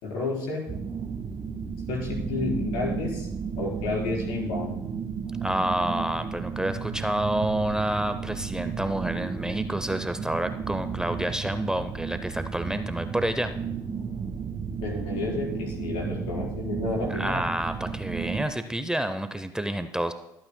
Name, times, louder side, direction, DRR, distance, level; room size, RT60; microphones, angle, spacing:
voice 1, 0.0-0.6 1.9-3.3 3.6-4.7 14.8-17.4, left 3 dB, 75° left, -3 dB, 4.6 m, -31 dB
sound 1, 0.7-18.4, right 6 dB, 40° right, 1.5 m, -33 dB
voice 2, 5.4-13.5 17.1-20.1, right 1 dB, 5° right, 9 dB, 0.7 m, -29 dB
23.5 x 8.8 x 2.3 m, 0.87 s
hypercardioid pair, 60°, 10 cm